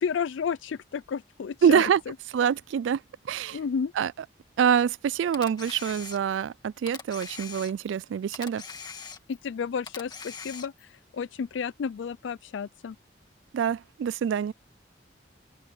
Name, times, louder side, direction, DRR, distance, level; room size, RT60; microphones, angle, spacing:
voice 1, 0.0-2.1 3.5-3.9 9.3-13.0, left 6 dB, 90° left, 0.4 m, -32 dB
voice 2, 1.6-2.0 2.3-3.0 3.3-3.6 4.0-4.1 4.6-8.6 13.5-14.5, right 8 dB, 85° right, 0.3 m, -25 dB
Camera, 5.3-6.5 6.9-8.0 8.3-9.5 9.9-10.9, left 5 dB, 25° left, 2.0 m, -41 dB
open air
head